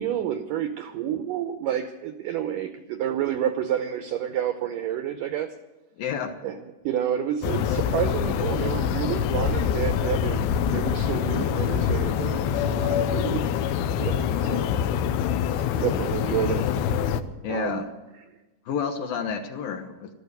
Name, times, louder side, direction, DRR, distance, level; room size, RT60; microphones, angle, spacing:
voice 1, 0.0-5.5 6.4-6.6 6.8-10.5 10.7-13.4 13.7-14.8 15.7-16.7 17.5-17.9, right 10 dB, 85° right, 9 dB, 1.9 m, -29 dB
voice 2, 6.0-6.3 17.4-17.8 18.7-20.1, left 7 dB, 70° left, 6 dB, 2.4 m, -30 dB
sound 1, 7.4-17.2, left 8 dB, 85° left, 3.0 m, -25 dB
13.5 x 13.0 x 8.1 m, 1.1 s
omnidirectional pair, 4.8 m